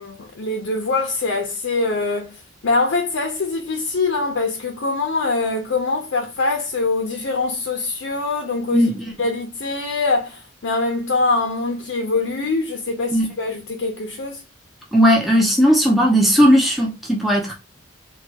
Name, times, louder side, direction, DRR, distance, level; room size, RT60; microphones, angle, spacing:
voice 1, 0.0-2.4 2.6-8.9 9.2-14.4, left 3 dB, 70° left, 0.6 m, -23 dB
voice 2, 8.7-9.0 13.1-13.4 14.9-17.5, equal, ahead, 0.5 m, -16 dB
3.3 x 2.3 x 2.7 m
head